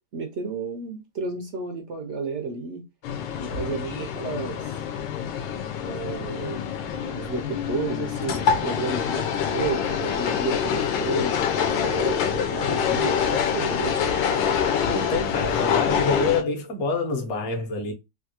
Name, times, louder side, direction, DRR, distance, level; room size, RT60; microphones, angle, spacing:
voice 1, 0.1-2.8 3.4-4.8 5.8-6.6 7.1-14.2, right 4 dB, 70° right, 0.6 m, -32 dB
sound 1, 3.0-16.4, left 7 dB, 85° left, 1.3 m, -25 dB
voice 2, 14.9-17.9, left 4 dB, 50° left, 1.0 m, -27 dB
3.4 x 2.3 x 2.7 m
omnidirectional pair, 1.9 m